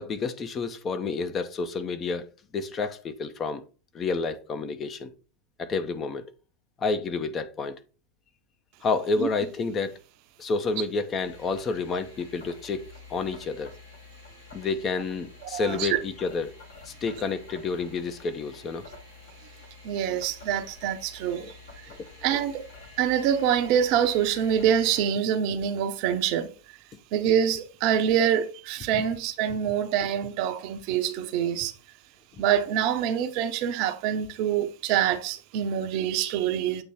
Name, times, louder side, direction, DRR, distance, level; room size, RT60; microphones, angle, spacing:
voice 1, 0.0-2.3 2.5-3.6 3.9-5.1 5.6-6.2 6.8-7.8 8.8-10.0 10.4-12.8 13.1-13.7 14.5-16.5 16.8-18.9 21.4-21.5 21.9-22.0 28.9-29.0, left 4 dB, 25° left, 0.6 m, -29 dB
sound 1, 11.2-25.1, left 4 dB, 65° left, 2.0 m, -48 dB
voice 2, 15.4-16.0 19.8-21.9 22.2-22.6 23.0-26.5 27.1-31.7 32.4-36.8, right 9 dB, 45° right, 0.7 m, -25 dB
7.8 x 3.0 x 4.2 m
figure-of-eight pair, 90°, 0 cm